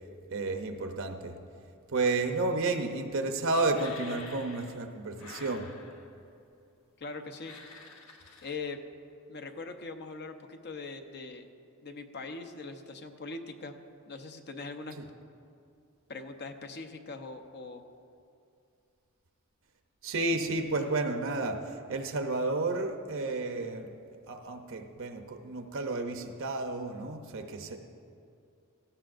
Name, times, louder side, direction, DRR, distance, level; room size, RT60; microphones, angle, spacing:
voice 1, 0.3-1.4 1.9-5.7 15.0-15.1 20.0-23.9 24.3-27.8, right 2 dB, 60° right, 5 dB, 0.8 m, -31 dB
sound 1, 3.7-4.8 5.1-6.2 7.4-8.6, left 4 dB, 70° left, 1.2 m, -49 dB
voice 2, 7.0-7.5 8.4-8.8 9.3-11.5 11.8-13.7 14.1-15.0 16.1-17.8, left 3 dB, 50° left, 6 dB, 0.8 m, -41 dB
17.0 x 14.5 x 2.6 m, 2.5 s
head